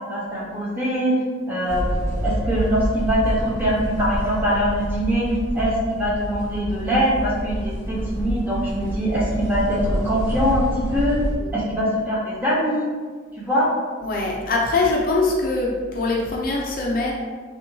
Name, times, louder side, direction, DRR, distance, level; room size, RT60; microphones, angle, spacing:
voice 1, 0.1-1.2 1.5-5.3 5.5-11.2 11.5-12.9 13.5-13.7, equal, 10° right, -6 dB, 0.6 m, -23 dB
sound 1, 1.7-11.4, equal, 60° right, 1.0 m, -27 dB
voice 2, 14.0-17.1, left 2 dB, 45° left, -2 dB, 0.4 m, -23 dB
3.6 x 2.1 x 2.6 m, 1.5 s
head